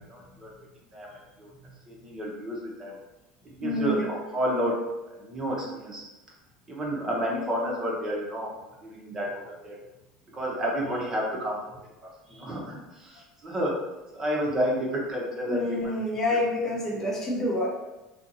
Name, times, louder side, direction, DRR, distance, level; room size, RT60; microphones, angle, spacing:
voice 1, 0.1-0.5 0.9-1.5 1.9-3.0 3.4-4.8 5.2-6.0 6.7-8.5 8.8-9.8 10.3-11.6 12.0-13.8 14.1-16.2, equal, 30° right, -3 dB, 0.8 m, -31 dB
voice 2, 3.6-4.1 12.3-12.5 15.5-17.7, left 1 dB, 20° left, -3 dB, 0.7 m, -28 dB
2.7 x 2.5 x 2.6 m, 1.0 s
supercardioid pair, 115°, 2 cm